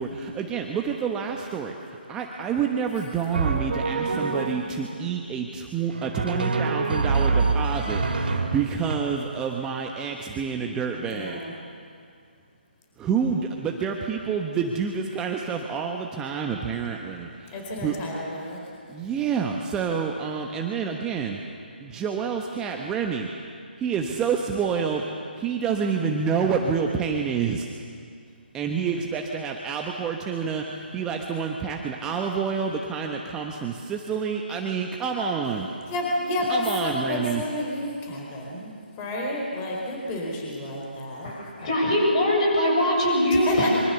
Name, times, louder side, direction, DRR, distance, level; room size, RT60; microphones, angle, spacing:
voice 1, 0.0-11.5 13.0-18.0 18.9-21.4 21.8-23.3 23.8-27.7 28.5-35.7 36.5-37.4, right 6 dB, 10° right, 1 dB, 1.1 m, -28 dB
Drum, 3.3-4.8 5.9-9.0, right 4 dB, 60° right, 3.4 m, -25 dB
voice 2, 11.1-11.5 17.5-18.8 35.9-41.3 43.5-43.8, left 1 dB, 20° left, -1 dB, 4.4 m, -30 dB
voice 3, 41.2-43.8, left 1 dB, 40° left, -1 dB, 7.7 m, -22 dB
25.5 x 24.0 x 7.0 m, 2.3 s
figure-of-eight pair, 150°, 6 cm